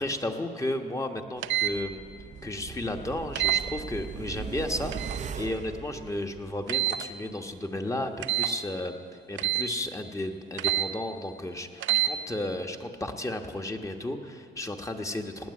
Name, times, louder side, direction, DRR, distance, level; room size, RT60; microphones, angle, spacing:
voice 1, 0.0-2.0 2.4-9.0 9.3-15.5, left 1 dB, 15° left, 4 dB, 1.2 m, -33 dB
sound 1, 1.4-1.7 3.4-3.6 4.9-5.2 6.7-7.0 8.2-8.5 9.4-9.7 10.6-10.9 11.8-12.1, right 13 dB, 75° right, 0.7 m, -26 dB
sound 2, 1.6-6.8 7.1-7.2, right 6 dB, 40° right, 0.6 m, -39 dB
17.5 x 8.8 x 8.5 m, 2.6 s
cardioid pair, 90°, 20 cm